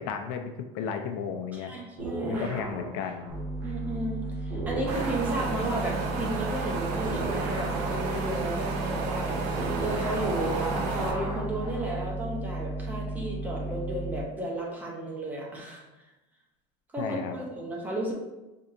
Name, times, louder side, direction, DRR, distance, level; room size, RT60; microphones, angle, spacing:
voice 1, 0.0-1.7 2.3-3.4 17.0-17.4, left 6 dB, 70° left, 6 dB, 0.4 m, -34 dB
voice 2, 1.5-2.5 3.6-10.6 10.9-15.8 16.9-18.1, right 1 dB, 10° right, -2 dB, 0.6 m, -33 dB
sound 1, 2.0-4.2 4.5-12.1, right 2 dB, 75° right, 1.1 m, -37 dB
sound 2, 3.3-14.2, right 2 dB, 35° right, 1.3 m, -35 dB
Wind, 4.9-11.1, right 3 dB, 60° right, 0.6 m, -32 dB
4.3 x 2.7 x 2.5 m, 1.0 s
cardioid pair, 165°, 15 cm